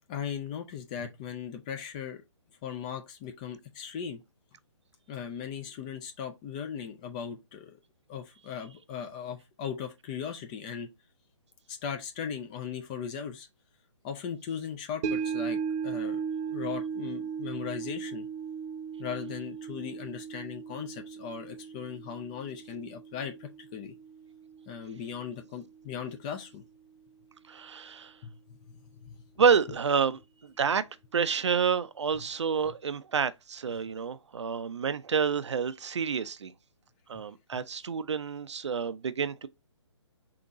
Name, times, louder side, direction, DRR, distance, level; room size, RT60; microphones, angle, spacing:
voice 1, 0.1-2.2 2.6-4.2 5.1-7.8 8.1-10.9 11.7-13.5 14.0-16.2 16.5-18.3 19.0-23.9 24.7-26.6 28.2-28.4 29.0-29.2 37.1-37.2 37.5-37.6, left 7 dB, 15° left, 0.3 m, -38 dB
sound 1, 15.0-25.4 25.8-25.9, right 7 dB, 30° right, 0.8 m, -37 dB
voice 2, 27.5-28.1 29.4-30.8 31.1-36.5 37.1-39.5, right 6 dB, 65° right, 0.5 m, -28 dB
3.9 x 2.9 x 3.6 m
figure-of-eight pair, 135°, 16 cm